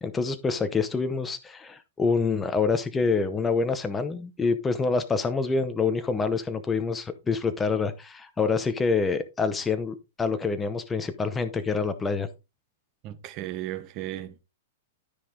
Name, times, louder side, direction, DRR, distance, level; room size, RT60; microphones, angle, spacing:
voice 1, 0.0-12.3, left 4 dB, 10° left, 0.8 m, -26 dB
voice 2, 13.0-14.4, right 14 dB, 30° right, 1.1 m, -35 dB
13.0 x 5.3 x 3.8 m
hypercardioid pair, 160°, 0 cm